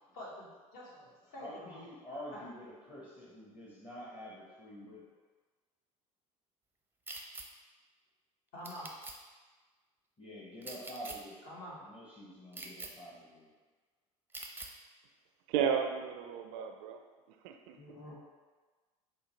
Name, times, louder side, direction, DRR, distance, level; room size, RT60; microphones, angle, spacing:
voice 1, 0.1-1.9 2.3-2.4 8.5-8.9 11.4-11.8 17.8-18.2, left 1 dB, 55° left, -5 dB, 1.4 m, -47 dB
voice 2, 1.4-5.0 10.2-11.4 11.7-13.5, equal, 30° left, -6 dB, 1.1 m, -47 dB
sound 1, 7.1-7.5 8.6-9.2 10.6-11.2 12.5-12.9 14.3-14.7, right 3 dB, 10° right, 0.5 m, -44 dB
voice 3, 15.5-17.0 17.4-18.0, right 7 dB, 65° right, 5 dB, 0.4 m, -33 dB
5.2 x 2.1 x 3.2 m, 1.3 s
hypercardioid pair, 75°, 18 cm